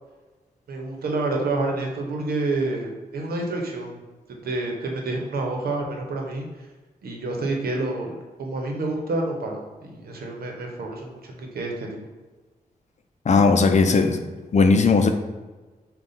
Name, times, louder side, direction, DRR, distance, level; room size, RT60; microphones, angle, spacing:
voice 1, 0.7-4.0 4.4-6.7 7.0-8.1 8.4-12.1, right 2 dB, 80° right, 1 dB, 0.9 m, -28 dB
voice 2, 13.3-14.2 14.5-15.1, left 4 dB, 50° left, 6 dB, 0.6 m, -17 dB
4.9 x 2.4 x 4.1 m, 1.2 s
cardioid pair, 60°, 16 cm